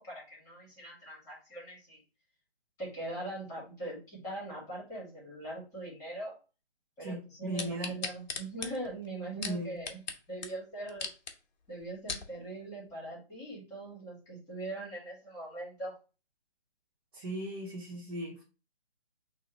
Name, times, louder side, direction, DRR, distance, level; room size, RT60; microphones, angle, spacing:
voice 1, 0.0-2.0 2.8-6.3 7.0-10.0 10.3-11.1 11.7-15.9, right 1 dB, 10° left, -6 dB, 2.6 m, -41 dB
voice 2, 7.0-7.9 9.4-9.8 17.1-18.4, right 1 dB, 20° right, -4 dB, 0.9 m, -37 dB
sound 1, 7.6-10.2 10.4-10.5 10.9-11.3 11.8-12.3 12.9-13.0, left 5 dB, 45° left, 0.9 m, -38 dB
6.1 x 2.8 x 3.1 m, 0.33 s
figure-of-eight pair, 150°, 33 cm